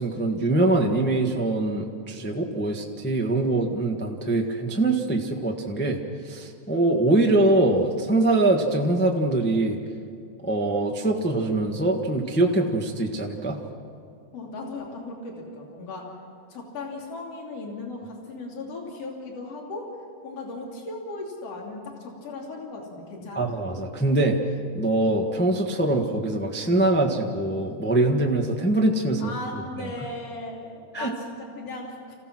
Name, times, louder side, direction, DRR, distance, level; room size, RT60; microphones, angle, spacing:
voice 1, 0.0-9.8 10.4-13.6 23.3-24.4 24.7-29.6 30.9-31.1, right 2 dB, 15° left, 1 dB, 0.3 m, -23 dB
voice 2, 14.3-16.1 16.5-19.9 20.2-23.5 29.2-32.2, left 2 dB, 55° left, -1 dB, 3.9 m, -37 dB
28.0 x 16.0 x 6.1 m, 2.4 s
omnidirectional pair, 3.4 m